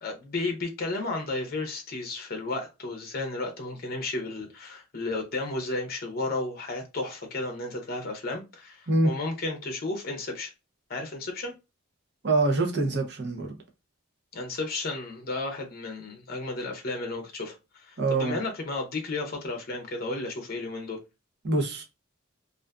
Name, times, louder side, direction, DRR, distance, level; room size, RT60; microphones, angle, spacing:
voice 1, 0.0-10.5 10.9-11.5 14.3-21.0, left 2 dB, 45° left, 0.6 m, -33 dB
voice 2, 12.2-13.6 18.0-18.4 21.4-21.8, right 2 dB, 55° right, 0.6 m, -25 dB
2.5 x 2.4 x 2.2 m
head